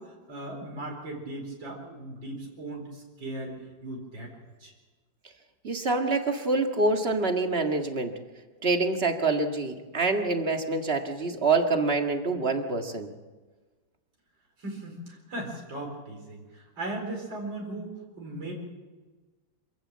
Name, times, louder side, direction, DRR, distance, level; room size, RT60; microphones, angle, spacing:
voice 1, 0.0-3.5 3.8-4.3 4.6-4.7 14.6-18.5, right 2 dB, 85° right, 0 dB, 5.1 m, -38 dB
voice 2, 5.6-8.1 8.6-13.1, right 3 dB, 35° right, 4 dB, 1.9 m, -26 dB
26.5 x 15.5 x 7.5 m, 1.3 s
omnidirectional pair, 2.0 m